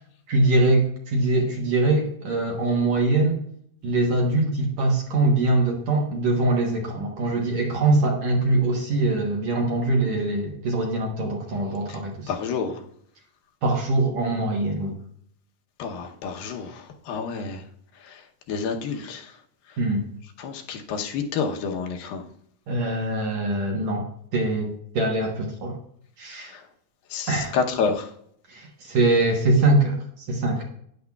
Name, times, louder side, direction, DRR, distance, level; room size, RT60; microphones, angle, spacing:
voice 1, 0.3-3.4 3.8-12.3 13.6-15.0 19.8-20.1 22.7-25.8 26.2-26.5 27.3-27.5 28.5-30.6, right 2 dB, 60° right, 0 dB, 2.1 m, -23 dB
voice 2, 12.3-12.9 15.8-17.7 18.0-19.4 19.7-19.8 20.4-22.3 26.4-26.7 27.1-28.1, left 5 dB, 80° left, 3 dB, 2.7 m, -29 dB
12.0 x 10.0 x 2.3 m, 0.68 s
omnidirectional pair, 4.1 m